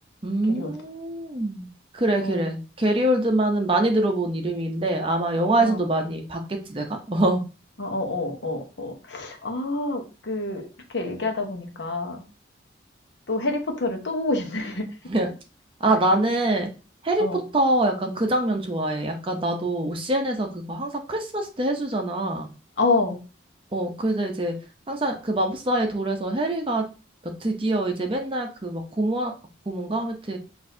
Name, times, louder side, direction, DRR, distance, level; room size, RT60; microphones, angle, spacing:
voice 1, 0.2-1.7 1.9-7.4 15.1-15.3 15.8-16.7 17.0-22.5 23.7-24.5 24.9-26.8 27.4-29.3 29.7-30.4, right 1 dB, 25° right, 3 dB, 0.6 m, -24 dB
voice 2, 2.2-2.5 5.6-5.8 7.8-10.7 10.9-12.2 13.3-14.9 17.2-17.4 22.8-23.2, left 2 dB, 65° left, 4 dB, 0.9 m, -27 dB
6.2 x 2.6 x 2.6 m, 0.32 s
head